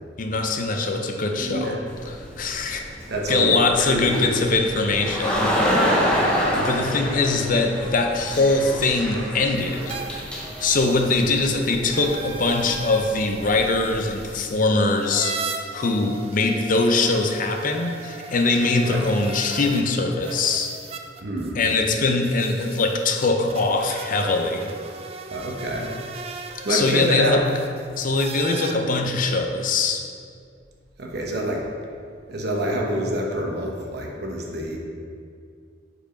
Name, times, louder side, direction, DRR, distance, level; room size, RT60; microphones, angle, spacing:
voice 1, 0.2-1.8 2.1-2.8 3.3-5.6 5.8-5.9 6.6-10.0 10.6-20.7 21.5-24.7 26.7-27.4 28.0-30.1, left 3 dB, 45° left, 4 dB, 0.5 m, -22 dB
voice 2, 1.4-1.8 3.1-4.3 6.0-7.0 18.8-19.1 21.2-21.6 25.3-25.9 26.6-27.4 31.0-31.7 32.3-34.8, right 1 dB, 60° right, -1 dB, 0.9 m, -27 dB
sound 1, 1.9-14.3, equal, 5° left, 0.8 m, -28 dB
sound 2, 9.5-19.8 20.2-28.7, right 4 dB, 35° right, 0.4 m, -38 dB
4.9 x 4.8 x 5.0 m, 2.3 s
head